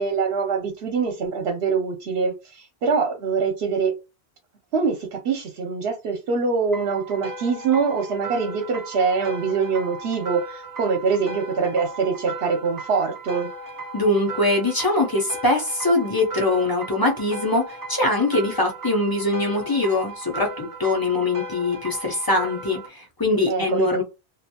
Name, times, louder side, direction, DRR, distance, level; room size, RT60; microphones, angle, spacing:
voice 1, 0.0-4.0 4.7-13.5 23.5-24.0, right 5 dB, 75° right, 0.9 m, -24 dB
sound 1, 6.7-22.9, right 3 dB, 30° right, 0.4 m, -37 dB
voice 2, 13.9-24.0, left 2 dB, 25° left, 0.6 m, -22 dB
2.6 x 2.2 x 2.7 m
omnidirectional pair, 1.1 m